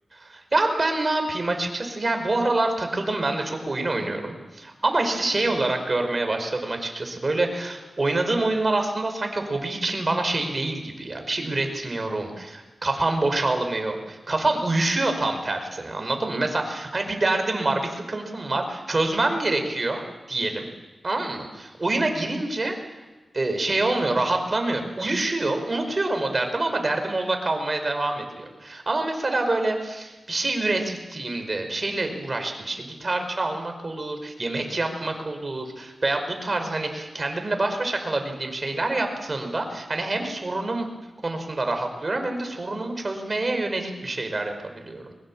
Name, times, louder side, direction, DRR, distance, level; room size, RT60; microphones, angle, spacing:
voice 1, 0.1-20.0 20.3-20.7 21.0-22.7 23.3-40.9 41.2-45.1, right 2 dB, 40° right, 5 dB, 5.0 m, -26 dB
22.5 x 20.5 x 7.4 m, 1.2 s
wide cardioid pair, 75°, 0 cm